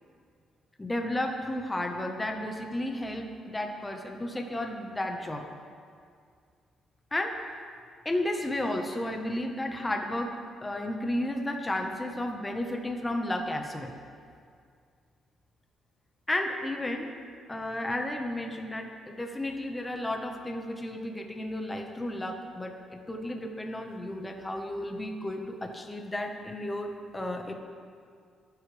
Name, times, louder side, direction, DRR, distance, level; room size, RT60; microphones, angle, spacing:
voice 1, 0.8-5.5 7.1-7.5 8.0-10.3 10.6-13.9 16.3-17.1 17.5-27.5, left 1 dB, 15° left, 3 dB, 1.4 m, -33 dB
23.5 x 10.0 x 3.5 m, 2.2 s
cardioid pair, 90°, 0 cm